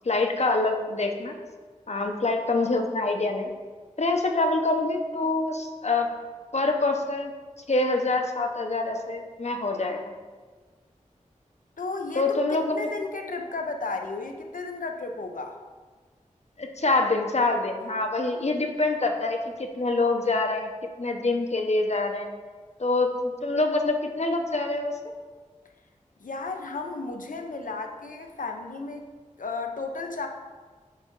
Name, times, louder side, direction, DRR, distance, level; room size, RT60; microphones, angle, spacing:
voice 1, 0.0-1.3 1.9-3.5 4.0-6.1 6.5-7.3 7.7-10.1 12.2-12.9 16.6-20.7 21.0-22.3 22.8-25.0, left 2 dB, 55° left, 4 dB, 0.8 m, -25 dB
voice 2, 11.8-15.6 26.2-29.0 29.4-30.3, left 3 dB, 90° left, 4 dB, 0.7 m, -34 dB
8.6 x 3.5 x 4.5 m, 1.4 s
wide cardioid pair, 60°, 13 cm